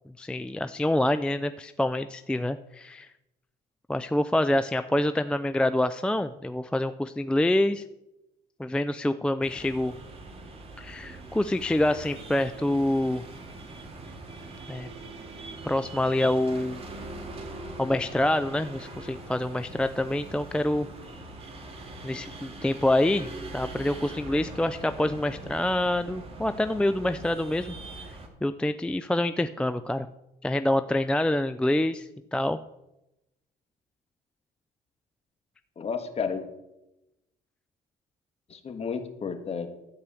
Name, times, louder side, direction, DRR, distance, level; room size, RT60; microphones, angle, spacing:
voice 1, 0.2-3.1 3.9-7.8 8.6-9.9 10.8-13.2 14.7-14.9 15.6-16.8 17.8-20.9 22.0-27.7 28.4-30.1 30.4-32.6, left 1 dB, 5° left, 10 dB, 0.4 m, -26 dB
sound 1, 9.4-28.3, right 2 dB, 35° right, 2.3 m, -42 dB
voice 2, 35.8-36.4 38.5-39.7, left 6 dB, 35° left, 7 dB, 1.5 m, -32 dB
13.0 x 4.8 x 8.4 m, 0.91 s
cardioid pair, 110°, 17 cm